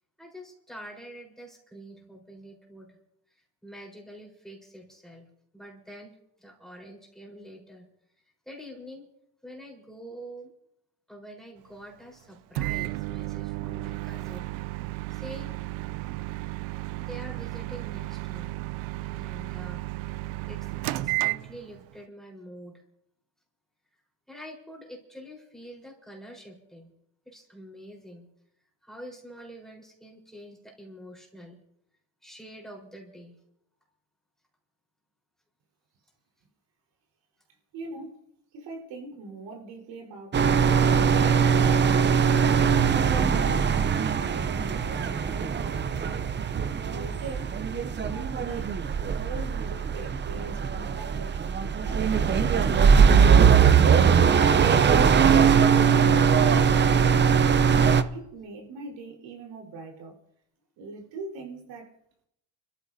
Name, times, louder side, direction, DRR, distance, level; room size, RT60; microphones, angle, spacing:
voice 1, 0.2-3.0 3.3-5.3 5.5-7.9 8.5-9.1 9.4-10.5 11.1-14.5 15.1-15.7 17.0-18.6 19.0-19.9 20.5-22.8 24.3-26.9 27.2-28.3 28.8-31.6 32.2-33.4, equal, ahead, 4.3 m, -46 dB
Microwave oven, 12.6-21.9, right 19 dB, 90° right, 0.6 m, -33 dB
voice 2, 37.7-38.2 38.5-40.6 40.9-41.7 41.9-42.3 42.9-45.9 46.7-51.4 51.8-54.8 55.5-60.1 60.8-61.9, right 4 dB, 70° right, 4.5 m, -42 dB
sound 1, 40.3-58.0, right 6 dB, 25° right, 0.6 m, -21 dB
30.0 x 14.0 x 2.8 m
cardioid pair, 130°, 45 cm